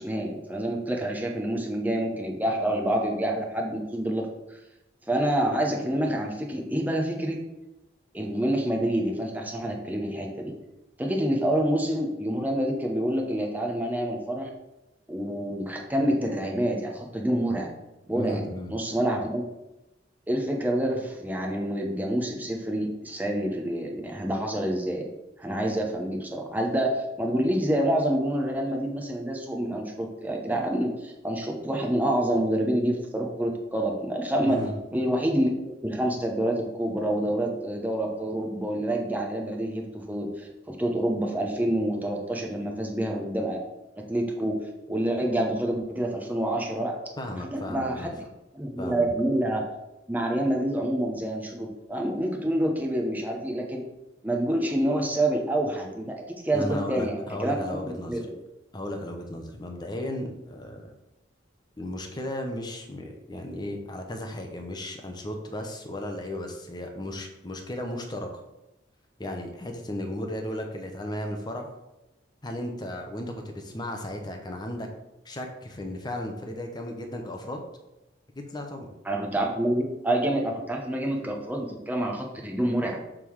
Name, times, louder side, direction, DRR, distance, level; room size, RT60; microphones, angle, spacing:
voice 1, 0.0-4.6 5.1-7.4 8.1-10.5 11.0-14.5 15.1-17.7 18.1-18.4 18.7-19.4 20.3-25.0 25.4-34.6 34.9-43.6 44.1-46.9 47.4-48.1 48.5-49.6 50.1-53.8 54.2-58.2 79.0-83.0, right 1 dB, 10° right, 0 dB, 0.9 m, -27 dB
voice 2, 18.1-18.7 34.5-34.7 47.2-48.1 48.8-49.1 56.5-58.1 58.7-60.9 61.8-68.3 69.2-71.7 72.4-74.9 75.2-77.6 78.3-78.9, left 1 dB, 25° left, 3 dB, 0.9 m, -35 dB
6.7 x 3.7 x 4.7 m, 0.97 s
head